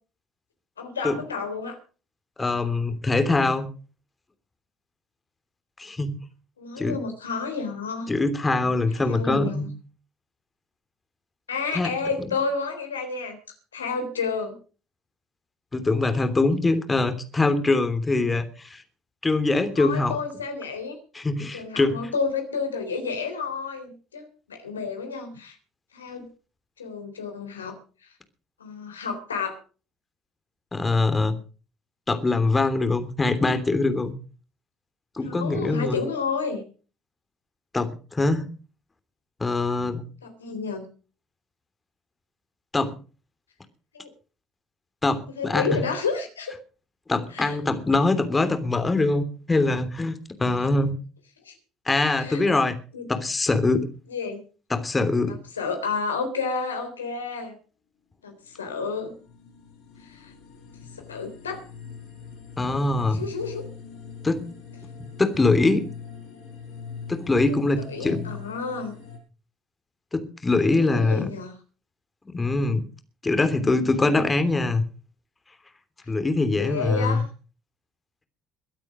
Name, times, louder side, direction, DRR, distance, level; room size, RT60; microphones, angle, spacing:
voice 1, 0.8-1.8 6.6-8.1 8.9-9.7 11.5-13.4 13.7-14.5 19.8-21.0 21.5-25.5 25.9-26.3 26.8-27.7 28.0-28.1 28.6-29.6 35.2-36.6 40.2-40.8 43.9-44.1 45.4-46.5 47.3-47.6 51.4-51.5 52.2-52.4 52.9-53.1 54.1-54.4 55.3-57.5 58.2-59.1 60.0-60.3 61.1-61.6 63.1-63.7 67.8-68.9 70.6-71.5 73.4-74.2 76.6-77.3, left 5 dB, 80° left, 5 dB, 3.5 m, -31 dB
voice 2, 2.4-3.7 5.8-6.2 6.8-7.0 8.1-9.7 11.7-11.9 12.2-12.3 15.7-18.8 19.2-20.2 21.1-22.0 30.7-31.4 32.1-34.1 35.2-36.0 37.7-38.5 39.4-40.0 42.7-43.0 45.0-45.8 47.1-50.1 50.4-51.0 51.9-52.8 53.1-53.9 54.7-55.4 62.6-63.2 64.2-64.4 65.2-65.9 67.1-68.2 70.1-71.3 72.3-72.8 73.2-74.8 76.1-77.2, left 3 dB, 20° left, 9 dB, 3.1 m, -23 dB
sound 1, 58.5-69.2, left 6 dB, 65° left, 5.6 m, -42 dB
22.5 x 8.9 x 5.1 m, 0.38 s
figure-of-eight pair, 55°, 0 cm